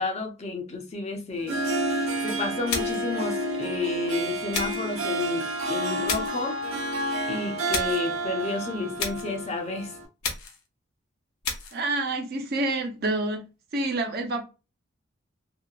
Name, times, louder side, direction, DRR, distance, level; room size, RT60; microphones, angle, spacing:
voice 1, 0.0-1.6 2.2-6.6 7.3-10.0, left 3 dB, 30° left, 0.5 m, -31 dB
Harp, 1.3-10.0, right 1 dB, 85° right, 0.9 m, -30 dB
sound 1, 2.7-3.1 4.5-4.9 6.1-6.4 7.7-8.1 9.0-9.4 10.2-10.7 11.4-11.8, left 5 dB, 90° left, 0.7 m, -32 dB
voice 2, 11.7-13.5 13.7-14.5, right 2 dB, 50° right, 0.6 m, -28 dB
2.8 x 2.2 x 2.3 m
head